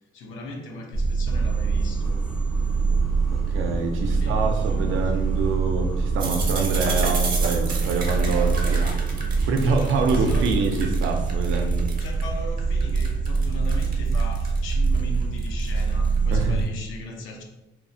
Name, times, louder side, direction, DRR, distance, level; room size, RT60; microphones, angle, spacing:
voice 1, 0.1-2.2 4.0-5.3 8.1-8.5 9.6-10.5 12.0-17.4, left 2 dB, 85° left, 2 dB, 0.5 m, -38 dB
sound 1, 0.9-16.7, right 4 dB, 70° left, 1.1 m, -24 dB
sound 2, 1.3-11.3, equal, 5° left, 0.4 m, -43 dB
voice 2, 3.5-8.8 9.4-11.9 16.3-16.6, right 3 dB, 85° right, 4 dB, 0.4 m, -26 dB
sound 3, 6.2-12.2 12.6-16.4, right 3 dB, 45° right, 0.7 m, -33 dB
3.0 x 2.1 x 2.5 m, 1.0 s
cardioid pair, 90°, 20 cm